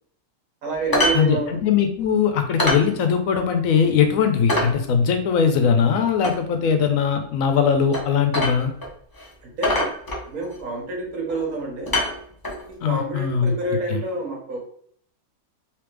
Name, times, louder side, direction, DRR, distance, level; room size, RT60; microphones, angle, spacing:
voice 1, 0.6-1.6 9.4-9.9 10.3-12.0 12.7-14.6, right 3 dB, 85° right, -1 dB, 1.5 m, -28 dB
sound 1, 0.9-1.2 1.5-1.6 2.0-2.1 2.6-2.9 3.3-3.4 3.8-3.9 4.5-4.7 6.2-6.4 7.9-8.1 8.3-8.9 9.2-9.3 9.6-10.6 11.3-11.5 11.9-12.6 13.6-13.7, left 1 dB, 25° left, 0.5 m, -24 dB
voice 2, 1.1-8.7 12.8-13.5 13.9-14.0, left 7 dB, 70° left, 6 dB, 1.0 m, -20 dB
3.4 x 3.1 x 3.2 m, 0.62 s
omnidirectional pair, 1.5 m